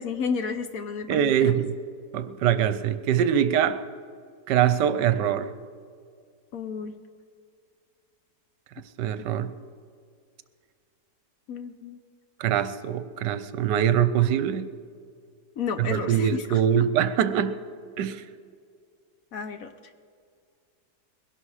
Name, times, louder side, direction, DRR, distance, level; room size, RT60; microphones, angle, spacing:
voice 1, 0.0-1.5 6.5-6.9 11.5-12.0 15.6-16.6 19.3-19.7, left 6 dB, 60° left, 9 dB, 1.1 m, -32 dB
voice 2, 1.1-1.8 2.1-3.9 4.5-5.5 9.0-9.5 12.4-14.7 15.8-17.6 18.0-18.2, right 9 dB, 75° right, 12 dB, 1.3 m, -23 dB
21.5 x 11.5 x 4.8 m, 2.2 s
omnidirectional pair, 1.9 m